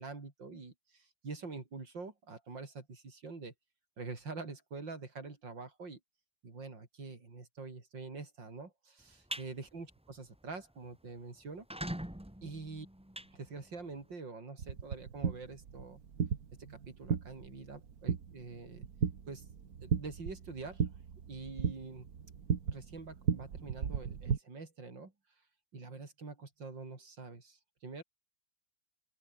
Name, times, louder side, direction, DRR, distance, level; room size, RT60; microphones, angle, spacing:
voice 1, 0.0-3.5 4.0-6.0 6.4-11.7 12.4-12.9 13.3-16.0 16.7-18.9 19.3-19.5 19.8-20.9 21.3-22.1 22.7-25.1 25.7-28.0, right 4 dB, 70° right, 4.8 m, -46 dB
sound 1, 9.0-9.5 9.9-10.2 10.5-10.6 10.8-10.9 11.5-14.0, equal, 5° right, 1.4 m, -42 dB
sound 2, 14.6-24.4, right 7 dB, 55° right, 2.0 m, -36 dB
open air
omnidirectional pair, 2.0 m